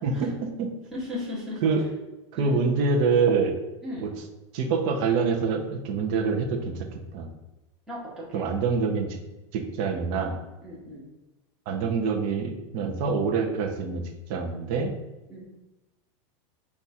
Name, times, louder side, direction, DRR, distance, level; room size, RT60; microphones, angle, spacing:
voice 1, 0.0-0.7 1.6-1.9 2.3-3.6 4.0-4.2 4.5-6.9 7.1-7.3 8.3-9.2 9.5-10.4 11.7-14.0 14.3-14.9, right 5 dB, 30° right, 3 dB, 0.5 m, -25 dB
voice 2, 0.9-1.6 2.3-2.6 3.8-4.0 7.9-8.0 8.3-8.5 10.6-11.0 15.3-15.4, left 2 dB, 5° right, -8 dB, 0.9 m, -35 dB
5.1 x 2.3 x 4.1 m, 1.0 s
supercardioid pair, 180°, 17 cm